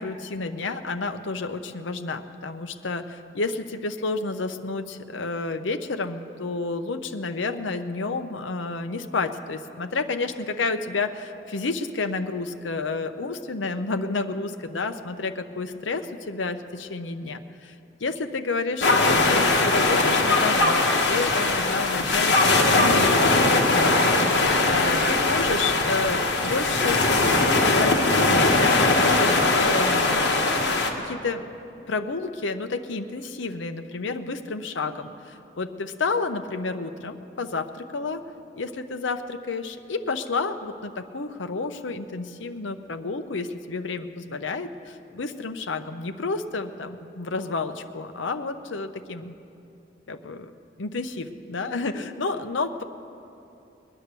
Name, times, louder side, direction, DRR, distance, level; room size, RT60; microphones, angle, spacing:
voice 1, 0.0-17.7 18.0-27.0 27.7-30.2 31.0-31.4 31.9-38.2 38.6-49.4 50.1-50.5 50.8-52.8, left 3 dB, 90° left, 7 dB, 0.8 m, -30 dB
sound 1, 18.8-30.9, left 2 dB, 65° left, 1.5 m, -20 dB
21.0 x 9.9 x 6.8 m, 2.8 s
head